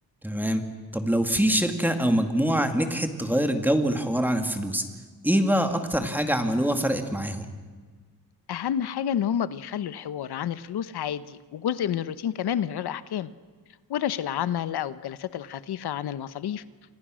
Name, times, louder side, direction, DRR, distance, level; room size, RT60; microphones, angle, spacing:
voice 1, 0.2-0.6 0.9-4.9 5.2-7.5, equal, 5° right, 5 dB, 2.3 m, -24 dB
voice 2, 8.5-13.3 13.9-16.6, left 9 dB, 90° left, 14 dB, 1.0 m, -29 dB
29.5 x 26.5 x 6.4 m, 1.5 s
wide cardioid pair, 140°, 38 cm